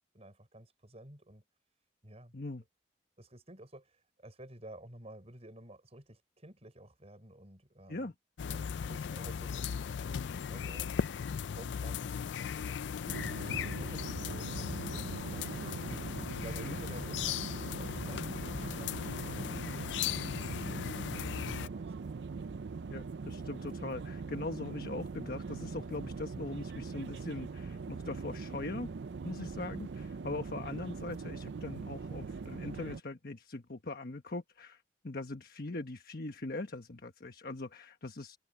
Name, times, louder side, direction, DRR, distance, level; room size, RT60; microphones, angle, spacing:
voice 1, 0.1-1.4 2.0-2.4 3.2-8.1 8.5-10.9 11.5-15.8 16.3-22.2, right 1 dB, 35° right, 5.8 m, -53 dB
sound 1, 8.4-21.7, left 7 dB, 90° left, 0.4 m, -37 dB
sound 2, 13.1-33.0, right 4 dB, 75° right, 0.5 m, -42 dB
voice 2, 22.9-28.9 29.2-38.4, left 2 dB, 55° left, 1.3 m, -41 dB
head